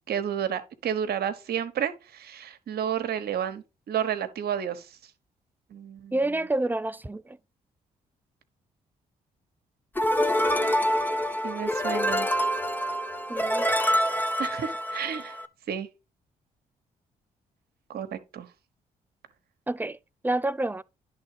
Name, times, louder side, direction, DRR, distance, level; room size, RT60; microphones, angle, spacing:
voice 1, 0.1-5.0 5.7-6.2 11.4-12.3 14.4-15.4 15.7-15.9 17.9-18.5, right 9 dB, 65° right, 1.2 m, -31 dB
voice 2, 6.1-7.4 13.3-13.7 19.7-20.0 20.2-20.8, right 2 dB, 10° right, 0.5 m, -28 dB
sound 1, 10.0-15.5, equal, 10° left, 1.1 m, -26 dB
10.5 x 3.7 x 4.8 m
hypercardioid pair, 50°, 17 cm